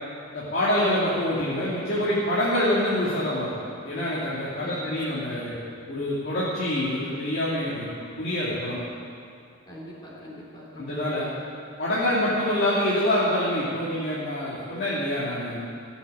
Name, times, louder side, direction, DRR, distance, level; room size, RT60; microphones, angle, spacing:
voice 1, 0.3-5.5 5.9-7.9 8.2-8.8 10.8-11.3 11.8-15.6, left 1 dB, 50° left, -9 dB, 2.6 m, -26 dB
voice 2, 4.6-5.5 9.6-11.2, left 1 dB, 20° left, -5 dB, 3.3 m, -42 dB
16.5 x 7.4 x 8.5 m, 2.4 s
head